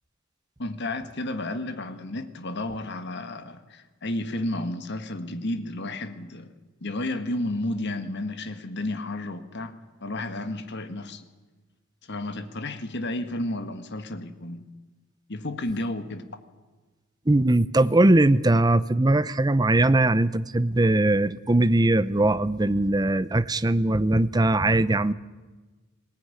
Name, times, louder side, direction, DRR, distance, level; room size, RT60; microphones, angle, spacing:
voice 1, 0.6-6.5 6.8-9.7 10.0-11.3 12.1-14.7 15.3-16.2, left 1 dB, 50° left, 9 dB, 1.7 m, -32 dB
voice 2, 17.3-25.1, right 2 dB, 20° right, 15 dB, 0.6 m, -20 dB
21.0 x 18.5 x 9.9 m, 1.3 s
head